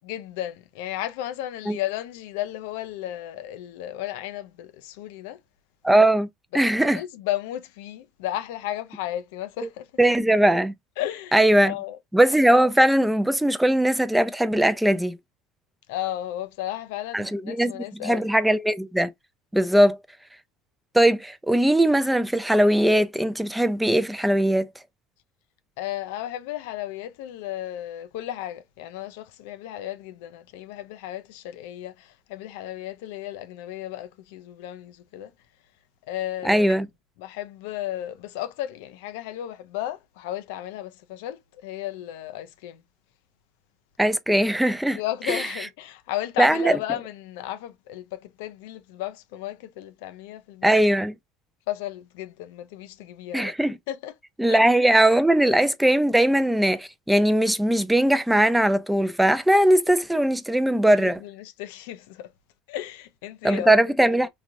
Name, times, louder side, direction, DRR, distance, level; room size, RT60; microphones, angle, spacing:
voice 1, 0.0-5.4 6.5-9.9 11.0-12.0 15.9-18.3 25.8-35.3 36.1-36.7 37.2-42.8 44.9-50.7 51.7-53.5 53.9-54.1 54.5-54.6 60.9-62.3 62.7-63.7 64.0-64.2, left 13 dB, 85° left, 0.4 m, -34 dB
voice 2, 5.8-6.3 6.5-7.0 10.0-10.7 11.3-11.7 12.1-15.2 17.1-19.1 19.5-20.0 20.9-24.7 36.4-36.9 44.0-45.0 45.3-45.4 46.4-46.8 50.6-51.1 53.3-53.8 54.4-61.2 63.4-64.3, right 1 dB, 5° right, 0.4 m, -20 dB
3.1 x 2.4 x 2.5 m
supercardioid pair, 120°, 0 cm